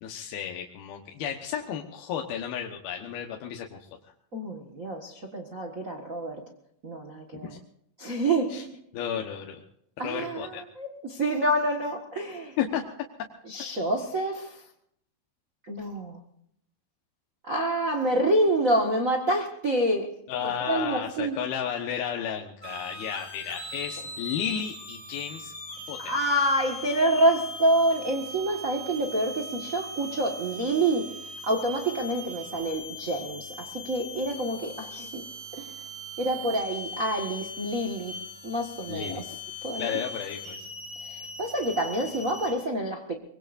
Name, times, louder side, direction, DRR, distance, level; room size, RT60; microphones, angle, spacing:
voice 1, 0.0-3.9 8.5-8.6 8.9-9.6 10.0-10.6 12.6-12.8 20.3-25.5 25.9-26.2 38.9-39.2 39.8-40.7, left 8 dB, 80° left, 2 dB, 3.1 m, -33 dB
voice 2, 4.3-6.4 6.8-7.5 8.0-8.8 10.0-12.6 13.5-14.6 15.7-16.2 17.4-20.1 20.7-21.4 26.0-31.1 31.4-35.2 35.5-35.7 36.2-38.1 38.4-39.2 39.6-40.0 41.0-43.1, right 1 dB, 45° right, 2 dB, 1.0 m, -27 dB
sound 1, 22.6-42.5, left 1 dB, 40° left, 7.0 m, -40 dB
24.0 x 22.0 x 2.6 m, 0.69 s
omnidirectional pair, 4.3 m